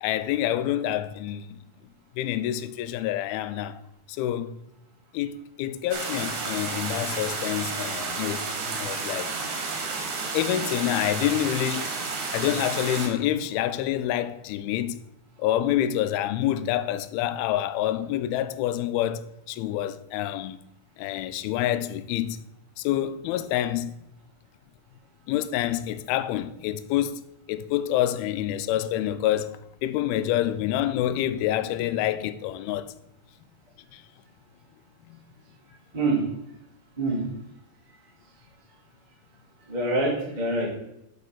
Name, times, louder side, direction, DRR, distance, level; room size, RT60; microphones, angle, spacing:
voice 1, 0.0-1.6 2.2-3.8 4.1-4.6 5.1-9.3 10.3-11.9 12.3-15.0 15.4-20.6 21.0-22.4 22.8-23.9 25.3-27.2 27.5-32.9 33.9-34.0 35.1-35.2, left 12 dB, 85° left, 2.4 m, -27 dB
sound 1, 5.9-13.1, right 4 dB, 60° right, 2.4 m, -31 dB
voice 2, 39.7-40.7, right 2 dB, 20° right, 1.2 m, -25 dB
7.4 x 5.4 x 6.2 m
omnidirectional pair, 4.3 m